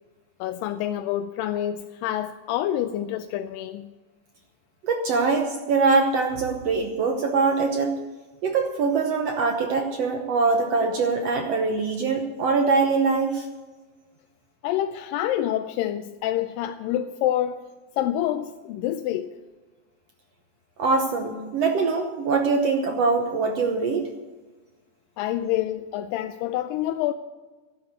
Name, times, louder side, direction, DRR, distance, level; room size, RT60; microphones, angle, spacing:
voice 1, 0.4-3.9 14.6-17.6 18.0-19.4 25.2-27.1, left 12 dB, 80° left, 8 dB, 2.2 m, -27 dB
voice 2, 4.8-7.9 8.4-13.5 20.8-24.1, right 4 dB, 70° right, 4 dB, 1.5 m, -23 dB
12.5 x 12.0 x 6.7 m, 1.3 s
omnidirectional pair, 4.2 m